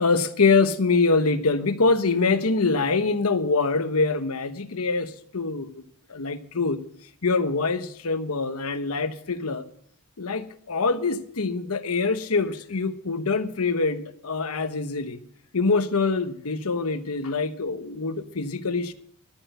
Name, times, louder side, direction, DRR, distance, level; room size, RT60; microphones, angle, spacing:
voice 1, 0.0-5.7 6.1-6.8 7.2-9.6 10.2-15.2 15.5-18.9, left 4 dB, 75° left, 10 dB, 1.0 m, -24 dB
12.5 x 8.9 x 6.7 m, 0.64 s
head